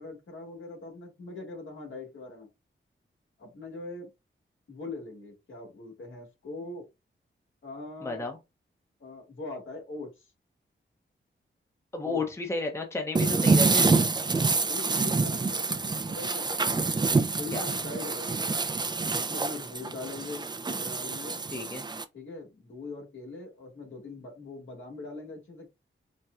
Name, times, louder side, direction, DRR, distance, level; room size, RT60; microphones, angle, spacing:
voice 1, 0.0-2.5 3.4-4.1 4.7-6.9 7.6-8.3 9.0-10.3 12.0-12.2 14.2-16.5 17.3-18.6 19.1-21.4 22.1-25.7, left 2 dB, 70° left, 1.5 m, -42 dB
voice 2, 8.0-8.4 11.9-13.9 17.5-17.7 21.5-21.9, left 3 dB, 15° left, 0.7 m, -32 dB
sound 1, 13.1-22.0, right 4 dB, 20° right, 0.3 m, -27 dB
4.2 x 2.2 x 2.4 m
wide cardioid pair, 115°, 21 cm